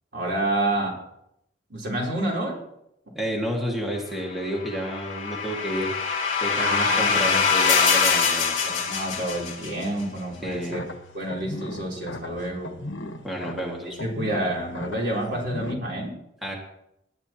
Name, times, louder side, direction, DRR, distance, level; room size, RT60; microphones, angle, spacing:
voice 1, 0.1-1.0 1.7-2.6 6.6-7.4 8.6-10.8 11.1-12.8 14.0-16.2, right 1 dB, 60° right, -3 dB, 3.8 m, -28 dB
voice 2, 3.1-5.9 6.4-8.5 10.4-10.8 13.2-14.0 16.4-16.5, equal, ahead, -2 dB, 2.0 m, -30 dB
sound 1, 4.6-9.9, left 6 dB, 40° left, 2.8 m, -23 dB
sound 2, 10.5-15.7, left 1 dB, 70° left, 1.2 m, -38 dB
19.0 x 11.0 x 3.0 m, 0.78 s
head